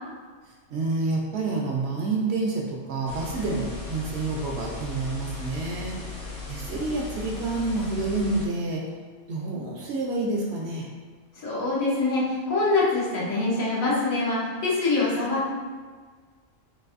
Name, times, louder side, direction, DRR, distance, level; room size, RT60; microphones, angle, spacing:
voice 1, 0.7-6.0 6.5-8.8 9.3-10.9, right 3 dB, 65° right, -1 dB, 0.7 m, -28 dB
sound 1, 3.1-8.5, left 4 dB, 50° left, 0.7 m, -37 dB
voice 2, 11.4-15.5, left 3 dB, 90° left, -6 dB, 1.4 m, -24 dB
4.0 x 2.5 x 2.4 m, 1.5 s
omnidirectional pair, 1.4 m